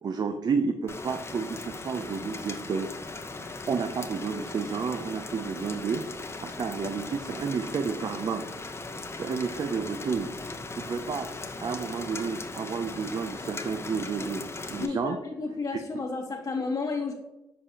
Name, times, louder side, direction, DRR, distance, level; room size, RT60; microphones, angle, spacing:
voice 1, 0.0-2.9 3.7-6.1 6.4-8.5 9.2-10.3 10.8-11.3 11.6-15.2 15.9-16.0, right 5 dB, 50° right, 7 dB, 0.5 m, -31 dB
Rain, 0.9-14.9, left 3 dB, 30° left, 0.8 m, -39 dB
voice 2, 14.8-17.1, left 4 dB, 45° left, -3 dB, 1.1 m, -31 dB
6.7 x 5.0 x 2.9 m, 1.0 s
cardioid pair, 65°, 9 cm